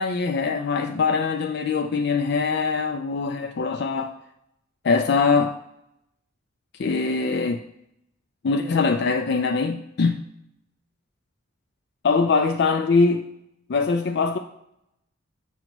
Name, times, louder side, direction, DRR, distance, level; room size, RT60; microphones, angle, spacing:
voice 1, 0.0-4.1 4.8-5.6 6.8-7.6 8.4-10.2 12.0-13.3 13.7-14.4, left 4 dB, 55° left, 0.4 m, -22 dB
7.9 x 2.9 x 6.0 m
head